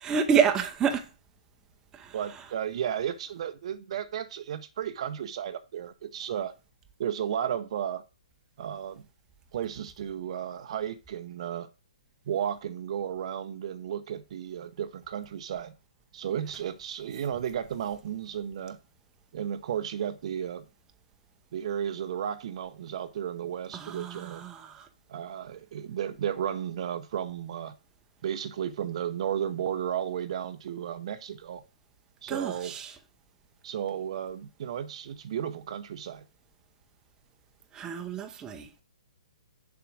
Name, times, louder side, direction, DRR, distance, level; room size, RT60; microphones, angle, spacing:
voice 1, 0.0-1.0 1.9-2.1 23.7-24.9 32.3-32.9 37.7-38.7, right 7 dB, 15° right, 0.8 m, -28 dB
voice 2, 2.1-6.5 7.0-8.0 8.6-9.1 9.5-11.7 12.3-15.7 16.1-18.8 19.3-20.7 21.5-24.4 25.1-27.7 28.2-31.6 32.2-32.7 33.6-36.2, right 9 dB, 50° right, 0.8 m, -33 dB
7.0 x 4.9 x 6.2 m
hypercardioid pair, 135°, 4 cm